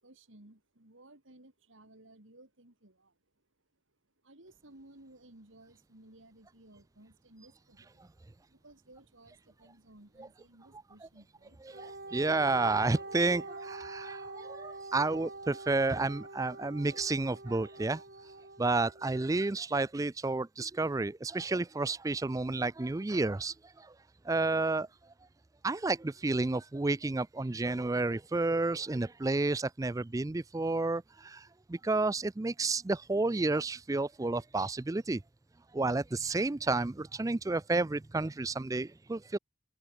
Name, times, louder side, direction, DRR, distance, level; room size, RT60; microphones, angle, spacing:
voice 1, 0.0-3.5 4.2-8.1 8.5-12.0 14.6-14.9, right 1 dB, 75° right, 3.5 m, -58 dB
voice 2, 11.7-18.0 18.6-23.9 24.2-24.9 25.6-35.2 35.7-39.4, right 3 dB, 15° right, 0.4 m, -31 dB
Wind instrument woodwind instrument, 11.7-19.4, right 2 dB, 50° right, 4.1 m, -45 dB
head